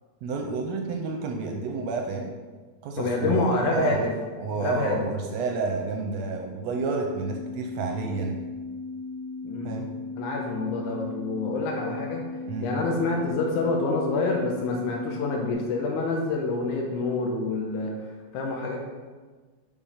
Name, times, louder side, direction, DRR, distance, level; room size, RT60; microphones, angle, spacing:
voice 1, 0.2-2.3 2.8-4.0 4.4-8.4 9.6-9.9 12.5-12.8, right 4 dB, 75° right, 2 dB, 1.6 m, -30 dB
voice 2, 3.0-4.1 4.6-5.1 9.4-9.8 10.2-12.2 12.6-17.9 18.3-18.8, left 3 dB, 85° left, 0 dB, 2.3 m, -27 dB
sound 1, 6.8-15.5, left 3 dB, 40° left, 1.4 m, -37 dB
5.5 x 5.0 x 5.6 m, 1.4 s
omnidirectional pair, 3.4 m